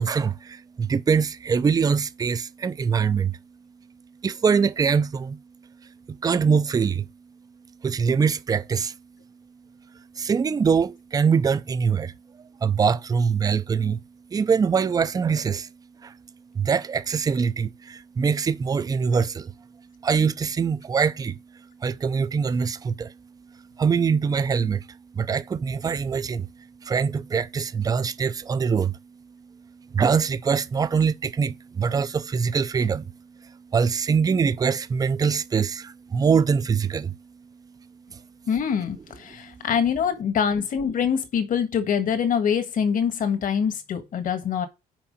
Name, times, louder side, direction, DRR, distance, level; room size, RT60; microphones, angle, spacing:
voice 1, 0.0-3.4 4.2-5.4 6.1-7.1 7.8-8.9 10.2-12.1 12.6-14.0 14.3-15.7 16.0-16.1 16.5-19.5 20.0-21.4 21.8-23.1 23.8-24.9 25.2-26.5 26.8-29.0 29.9-33.1 33.4-37.2 38.1-38.2, right 6 dB, 20° right, 0.4 m, -23 dB
voice 2, 38.5-44.7, left 7 dB, 55° left, 1.6 m, -24 dB
6.0 x 4.8 x 6.4 m
cardioid pair, 110°, 17 cm